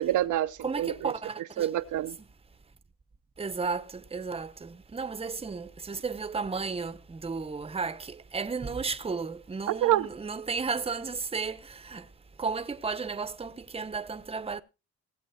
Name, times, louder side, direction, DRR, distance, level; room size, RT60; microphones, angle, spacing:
voice 1, 0.0-1.1 1.6-2.2 9.7-10.1, right 13 dB, 75° right, 0.8 m, -27 dB
voice 2, 0.6-1.7 3.4-12.1 12.4-14.6, right 4 dB, 20° right, 0.9 m, -34 dB
18.0 x 8.0 x 4.3 m
cardioid pair, 90°, 30 cm